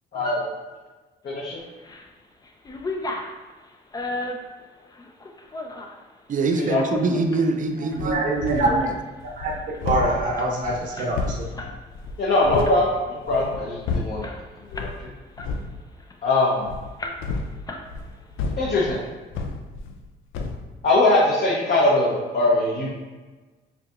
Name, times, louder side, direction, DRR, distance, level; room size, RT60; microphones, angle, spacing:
voice 1, 0.1-0.4 1.2-1.6 6.7-6.8 12.2-14.3 14.7-15.1 16.2-16.7 18.6-19.0 20.8-22.9, left 2 dB, 50° left, -5 dB, 0.8 m, -21 dB
sound 1, 1.6-2.1 2.4-6.0 6.5-7.5 7.9-8.1 8.5-8.8 9.1-9.2 9.4-11.8 12.1-12.3 12.6-13.1 13.5-13.6 13.9-15.0 15.4-16.5 17.0-17.4 17.7-18.3, left 2 dB, 20° left, 0.4 m, -35 dB
voice 2, 6.3-8.9, right 3 dB, 40° right, 5 dB, 0.4 m, -24 dB
sound 2, 7.9-8.9 9.2-12.8 13.2-14.3 14.7-15.0 15.4-15.7 16.6-20.1 20.3-20.7, left 4 dB, 85° left, 0.4 m, -31 dB
voice 3, 8.0-8.9 9.4-9.5 9.8-11.5, right 1 dB, 60° right, -5 dB, 1.0 m, -24 dB
4.5 x 2.8 x 2.4 m, 1.3 s
cardioid pair, 90°, 20 cm